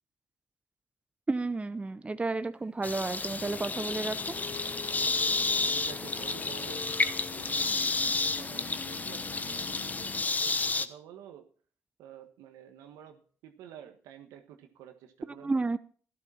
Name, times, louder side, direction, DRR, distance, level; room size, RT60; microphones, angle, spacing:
voice 1, 1.3-4.2 15.3-15.8, right 3 dB, 20° right, 0.7 m, -31 dB
sound 1, 2.8-10.9, left 3 dB, 30° left, 0.9 m, -31 dB
sound 2, 3.3-10.2, left 7 dB, 55° left, 0.7 m, -44 dB
voice 2, 5.7-6.9 7.3-11.5 12.0-15.6, right 10 dB, 85° right, 1.4 m, -49 dB
12.5 x 11.5 x 4.3 m
supercardioid pair, 65°, 6 cm